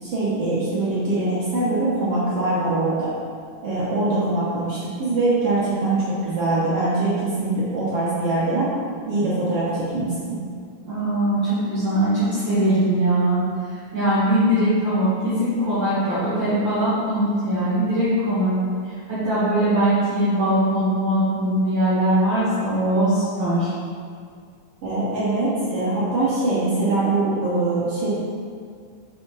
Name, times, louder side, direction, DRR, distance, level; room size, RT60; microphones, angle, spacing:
voice 1, 0.0-3.1 3.6-8.7 9.1-10.4 24.8-28.1, right 2 dB, 60° right, -8 dB, 1.7 m, -23 dB
voice 2, 10.8-13.4 13.7-23.7, right 1 dB, 40° right, -12 dB, 2.2 m, -21 dB
6.6 x 5.8 x 4.1 m, 2.1 s
omnidirectional pair, 4.0 m